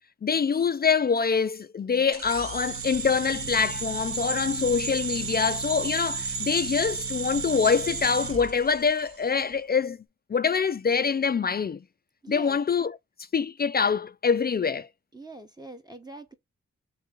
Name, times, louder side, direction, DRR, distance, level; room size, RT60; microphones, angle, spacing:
voice 1, 0.2-10.0 10.3-11.8 12.3-13.0 13.3-14.9, left 6 dB, 35° left, 0.4 m, -25 dB
sound 1, 2.1-9.2, right 5 dB, 50° right, 0.7 m, -33 dB
voice 2, 12.2-12.6 15.1-16.3, right 2 dB, 15° right, 0.9 m, -43 dB
3.4 x 2.9 x 3.7 m
cardioid pair, 45°, 29 cm